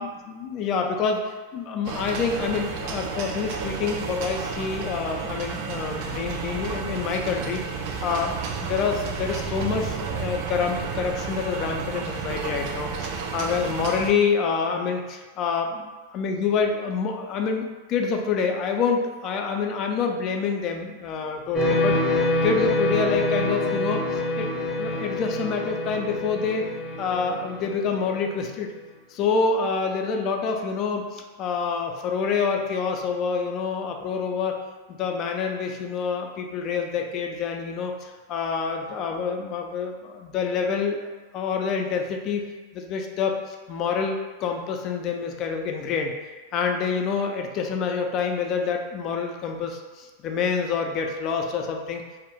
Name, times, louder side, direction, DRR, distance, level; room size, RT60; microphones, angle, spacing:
voice 1, 0.0-8.3 8.6-15.7 16.1-22.0 22.4-24.0 24.4-24.5 24.8-26.7 27.0-28.7 29.1-34.6 34.9-41.0 41.3-42.4 42.7-46.1 46.5-52.0, left 5 dB, 40° left, 3 dB, 0.3 m, -27 dB
sound 1, 1.9-14.1, right 5 dB, 55° right, 0.3 m, -32 dB
sound 2, 21.5-28.2, left 2 dB, 20° left, 0.8 m, -26 dB
2.2 x 2.0 x 3.0 m, 1.3 s
supercardioid pair, 130°, 0 cm